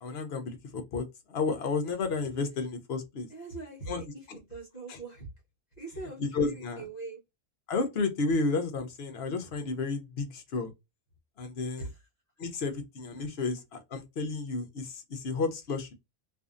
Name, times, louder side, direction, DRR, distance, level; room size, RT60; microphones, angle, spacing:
voice 1, 0.0-3.3 3.9-4.4 4.9-5.0 6.2-6.9 7.7-10.7 11.4-11.9 12.4-15.9, left 4 dB, 60° left, 0.8 m, -32 dB
voice 2, 3.3-5.3 5.8-7.2 11.8-12.1, right 3 dB, 35° left, 1.0 m, -42 dB
2.6 x 2.5 x 2.4 m
omnidirectional pair, 1.3 m